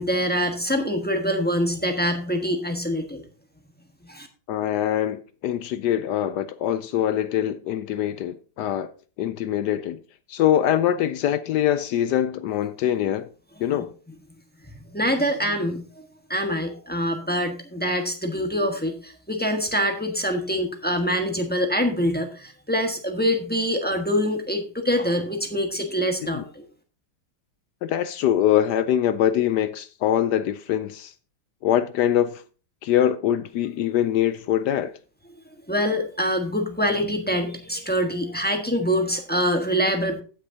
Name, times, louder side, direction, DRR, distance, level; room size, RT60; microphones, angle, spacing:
voice 1, 0.0-3.2 4.0-4.3 14.9-26.6 35.7-40.2, equal, 5° left, 0.9 m, -25 dB
voice 2, 4.5-8.9 9.2-10.0 10.3-13.3 13.6-13.9 26.3-26.4 27.8-31.1 31.6-32.4 32.8-34.9, left 11 dB, 75° left, 0.9 m, -23 dB
16.0 x 6.5 x 2.7 m
omnidirectional pair, 2.3 m